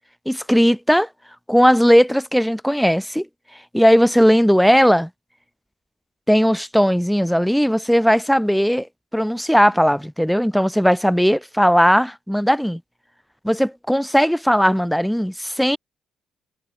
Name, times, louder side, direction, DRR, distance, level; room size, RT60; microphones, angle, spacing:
voice 1, 0.3-1.1 1.5-3.3 3.7-5.1 6.3-8.9 9.1-12.8 13.4-15.8, equal, ahead, 2.4 m, -17 dB
cardioid pair, 90°, 0 cm